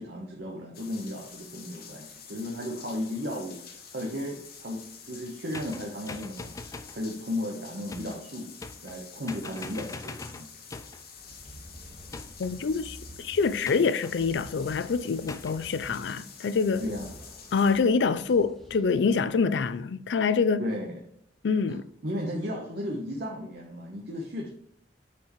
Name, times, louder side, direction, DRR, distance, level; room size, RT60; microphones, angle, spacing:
voice 1, 0.0-8.5 8.8-10.5 16.8-17.1 20.6-21.0 22.0-24.5, left 1 dB, 65° right, 1.0 m, -35 dB
sound 1, 0.7-17.8, left 6 dB, 60° left, 1.1 m, -48 dB
sound 2, 5.5-7.0 7.9-8.2 8.6-9.0 9.3-11.1 12.1-12.6 13.6-14.2 15.3-15.6, left 3 dB, 20° left, 0.3 m, -42 dB
sound 3, 11.2-19.3, equal, ahead, 1.0 m, -50 dB
voice 2, 12.4-16.8 17.5-20.6 21.4-21.9, left 5 dB, 90° left, 0.4 m, -26 dB
8.5 x 4.4 x 3.0 m
head